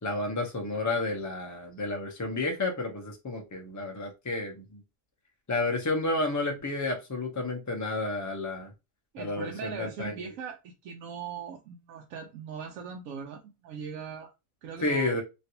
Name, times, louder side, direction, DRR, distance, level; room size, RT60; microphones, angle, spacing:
voice 1, 0.0-4.8 5.5-8.7 9.2-10.2 14.8-15.2, left 2 dB, 25° left, 0.4 m, -31 dB
voice 2, 9.1-14.3 14.6-15.1, right 6 dB, 70° right, 0.9 m, -40 dB
3.2 x 2.5 x 2.8 m
omnidirectional pair, 1.6 m